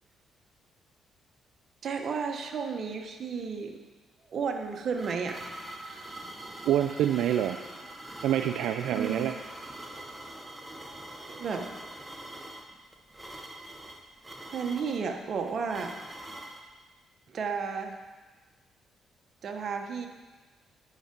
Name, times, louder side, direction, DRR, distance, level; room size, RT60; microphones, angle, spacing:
voice 1, 1.8-3.8 4.3-5.4 5.8-6.1 8.9-9.3 11.3-11.7 14.5-15.9 17.3-17.9 19.4-20.1, right 5 dB, 55° right, 4 dB, 1.0 m, -33 dB
sound 1, 4.5-16.7, right 1 dB, 15° right, 1.0 m, -44 dB
voice 2, 6.7-7.6 8.2-9.3, right 11 dB, 85° right, 7 dB, 0.3 m, -26 dB
9.6 x 5.7 x 5.2 m, 1.3 s
cardioid pair, 90°, 0 cm